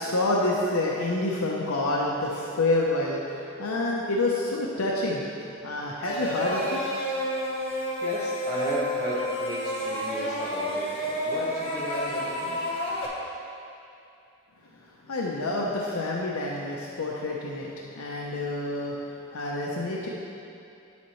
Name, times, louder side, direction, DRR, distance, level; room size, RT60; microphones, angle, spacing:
voice 1, 0.0-5.2 5.6-6.8 15.1-20.1, left 2 dB, 80° left, -3 dB, 0.7 m, -28 dB
sound 1, 6.0-13.1, equal, 25° left, 1.0 m, -30 dB
voice 2, 8.0-12.5, right 1 dB, 20° right, -9 dB, 1.7 m, -34 dB
9.4 x 7.3 x 3.1 m, 2.6 s
head